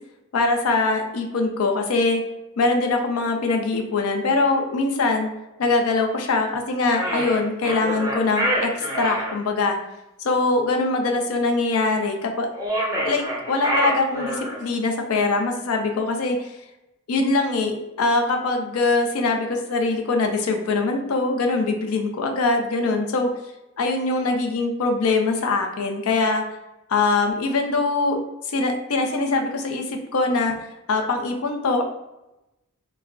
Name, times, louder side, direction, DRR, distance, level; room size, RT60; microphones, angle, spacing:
voice 1, 0.3-2.2 2.6-5.3 5.6-9.8 10.2-12.5 13.0-16.5 17.1-23.3 23.8-26.4 26.9-28.2 28.5-30.5 30.9-31.8, left 3 dB, 75° left, 3 dB, 0.4 m, -22 dB
sound 1, 6.9-9.3 12.5-14.7, equal, 15° right, 0.5 m, -26 dB
2.3 x 2.0 x 3.5 m, 0.95 s
head